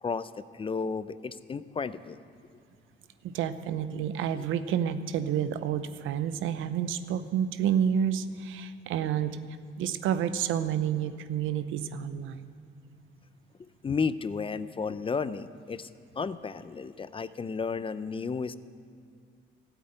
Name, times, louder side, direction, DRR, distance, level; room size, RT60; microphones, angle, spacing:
voice 1, 0.0-2.2 4.4-4.5 13.6-15.9 16.2-18.6, left 5 dB, 25° left, 15 dB, 0.5 m, -33 dB
voice 2, 3.2-9.4 9.8-12.5, right 9 dB, 85° right, 12 dB, 0.7 m, -29 dB
13.5 x 8.2 x 8.8 m, 2.3 s
cardioid pair, 90°, 20 cm